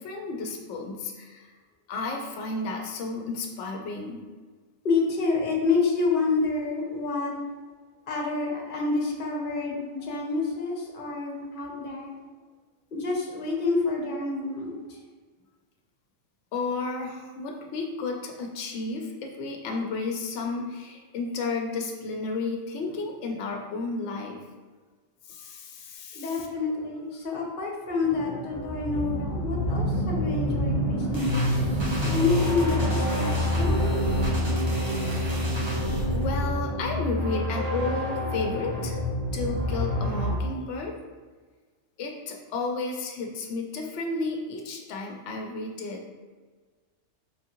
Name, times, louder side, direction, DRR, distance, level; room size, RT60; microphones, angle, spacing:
voice 1, 0.0-1.5 1.9-4.2 16.5-24.4 25.3-26.5 36.1-39.0 39.3-41.0 42.0-46.1, left 3 dB, 75° left, 2 dB, 0.9 m, -32 dB
voice 2, 4.8-7.3 8.1-12.1 12.9-15.0 26.1-31.5 32.0-34.0, left 4 dB, 50° left, -1 dB, 0.9 m, -28 dB
sound 1, 28.0-40.4, equal, 65° right, 1.4 m, -27 dB
sound 2, 31.1-36.4, right 1 dB, 25° right, 0.8 m, -33 dB
3.5 x 3.4 x 2.9 m, 1.4 s
omnidirectional pair, 1.2 m